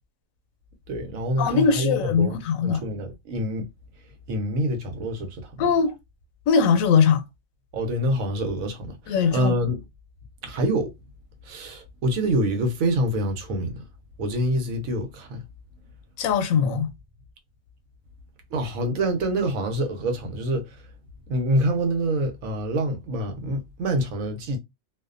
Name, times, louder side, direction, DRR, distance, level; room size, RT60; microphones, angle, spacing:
voice 1, 0.9-3.7 4.3-5.6 7.7-9.8 10.4-10.9 11.4-13.8 14.2-15.4 18.5-20.8 21.3-24.6, right 1 dB, 80° right, 1.1 m, -26 dB
voice 2, 1.4-2.8 5.6-5.9 6.5-7.2 9.1-9.5 16.2-16.9, left 6 dB, 85° left, 1.0 m, -21 dB
2.5 x 2.1 x 2.4 m
omnidirectional pair, 1.4 m